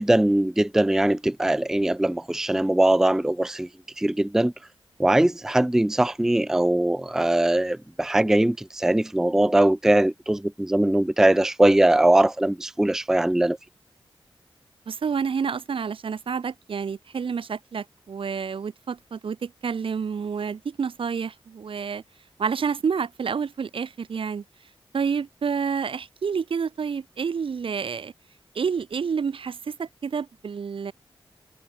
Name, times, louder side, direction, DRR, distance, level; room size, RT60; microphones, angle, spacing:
voice 1, 0.0-3.7 4.0-4.5 5.0-13.6, right 1 dB, 5° right, 0.4 m, -21 dB
voice 2, 14.9-22.0 22.4-24.4 24.9-28.1 28.5-30.9, right 6 dB, 70° right, 0.9 m, -29 dB
cardioid pair, 60°, 9 cm